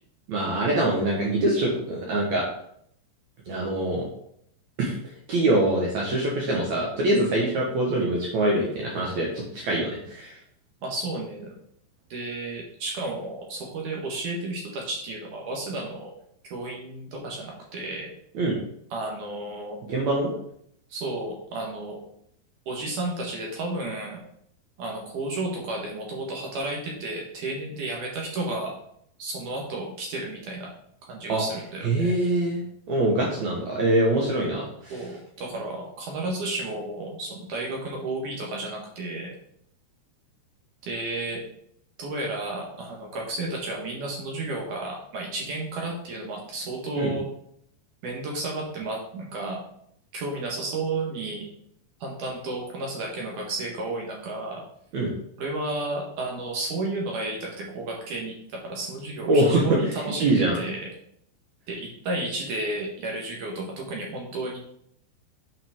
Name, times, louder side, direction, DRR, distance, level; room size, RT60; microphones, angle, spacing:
voice 1, 0.3-2.5 3.5-4.0 4.8-4.9 5.3-10.4 18.3-18.6 19.9-20.3 31.3-31.4 31.8-32.6 32.9-34.9 46.9-47.1 54.9-55.1 59.3-59.6 60.2-60.6, right 1 dB, 80° right, -2 dB, 1.6 m, -24 dB
voice 2, 10.8-11.5 12.1-16.1 16.5-18.1 18.9-19.8 20.9-22.0 22.7-24.2 24.8-28.7 29.2-30.7 31.0-32.1 34.9-39.3 40.8-41.4 42.0-47.3 48.0-49.6 50.1-51.5 52.0-54.6 55.4-60.9 61.7-64.6, right 2 dB, 65° right, -2 dB, 2.2 m, -32 dB
8.4 x 5.9 x 3.6 m, 0.69 s
omnidirectional pair, 5.1 m